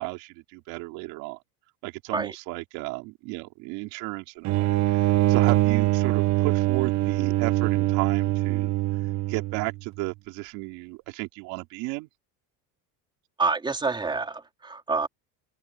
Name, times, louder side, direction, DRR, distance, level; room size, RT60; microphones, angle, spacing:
voice 1, 0.0-1.4 1.8-8.7 9.3-12.1, right 24 dB, 75° right, 4.0 m, -34 dB
sound 1, 4.4-9.8, right 17 dB, 45° right, 1.2 m, -23 dB
voice 2, 13.4-15.1, right 4 dB, 10° right, 3.7 m, -27 dB
open air
cardioid pair, 150°, 38 cm